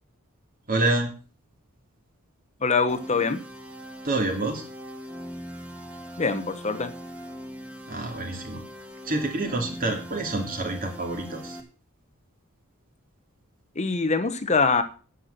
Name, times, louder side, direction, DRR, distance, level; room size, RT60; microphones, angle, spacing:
voice 1, 0.7-1.1 4.0-4.6 7.9-8.6 9.0-11.6, right 2 dB, 40° right, 4 dB, 2.9 m, -27 dB
voice 2, 2.6-3.4 6.2-6.9 13.8-14.8, left 4 dB, 30° left, 10 dB, 0.9 m, -24 dB
sound 1, 2.9-11.6, equal, 5° right, 1.7 m, -40 dB
10.0 x 8.3 x 6.7 m, 0.37 s
head